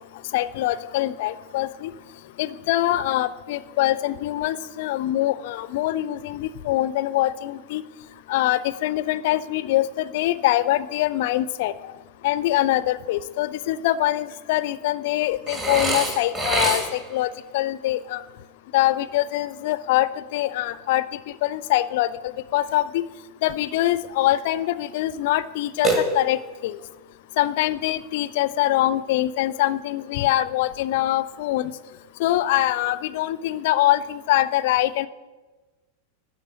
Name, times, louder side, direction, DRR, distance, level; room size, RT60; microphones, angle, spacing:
voice 1, 0.3-1.9 2.4-7.8 8.3-11.7 12.2-18.2 18.7-21.1 21.4-23.0 23.4-26.8 27.4-31.7 32.2-35.1, left 14 dB, 50° left, 16 dB, 0.4 m, -24 dB
Burping eructation, 15.5-17.2 25.8-26.6, right 2 dB, 25° right, 1.8 m, -25 dB
11.5 x 4.1 x 5.3 m, 1.2 s
figure-of-eight pair, 90°, 0 cm